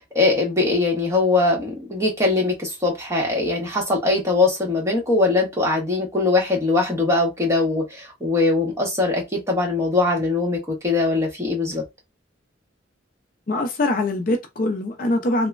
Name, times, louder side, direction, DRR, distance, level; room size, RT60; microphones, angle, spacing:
voice 1, 0.1-11.8, left 3 dB, 15° right, 1.1 m, -21 dB
voice 2, 13.5-15.5, left 2 dB, 50° left, 0.5 m, -23 dB
2.9 x 2.1 x 2.3 m
head